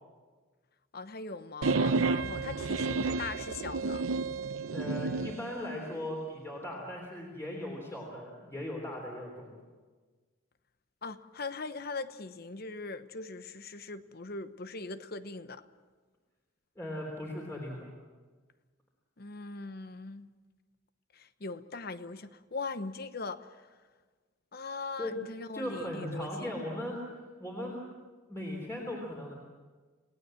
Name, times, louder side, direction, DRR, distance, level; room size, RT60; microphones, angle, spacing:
voice 1, 0.9-4.1 11.0-15.6 19.2-20.3 21.1-23.5 24.5-26.5, left 3 dB, 50° left, 12 dB, 0.9 m, -40 dB
sound 1, 1.6-5.4, right 4 dB, 85° right, 0.7 m, -30 dB
voice 2, 4.7-9.6 16.8-17.9 25.0-25.2 25.5-27.0 27.4-27.8 28.3-29.4, left 1 dB, 15° left, -1 dB, 3.4 m, -38 dB
29.5 x 17.5 x 7.8 m, 1.4 s
head